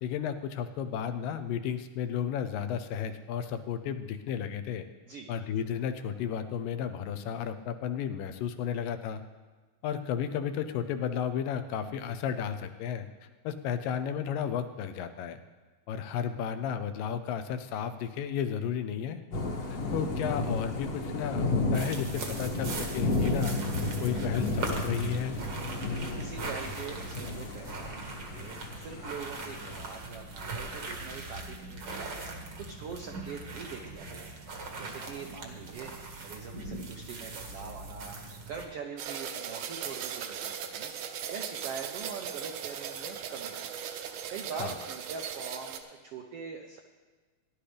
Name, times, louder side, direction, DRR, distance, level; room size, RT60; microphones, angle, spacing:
voice 1, 0.0-4.9 5.3-9.2 9.8-13.1 13.4-15.4 15.9-19.2 19.7-23.6 24.0-25.4 44.6-44.8, left 8 dB, 85° left, 8 dB, 2.4 m, -33 dB
Thunder / Rain, 19.3-29.9, left 2 dB, 55° left, 1.6 m, -33 dB
sound 1, 21.7-38.7, right 3 dB, 55° right, 1.3 m, -40 dB
voice 2, 25.8-34.5 34.8-35.9 36.2-40.9 41.3-43.7 44.3-46.8, right 6 dB, 90° right, 3 dB, 1.3 m, -43 dB
sound 2, 39.0-45.8, right 8 dB, 70° right, 1.9 m, -38 dB
17.5 x 11.0 x 3.4 m, 1.3 s
omnidirectional pair, 3.8 m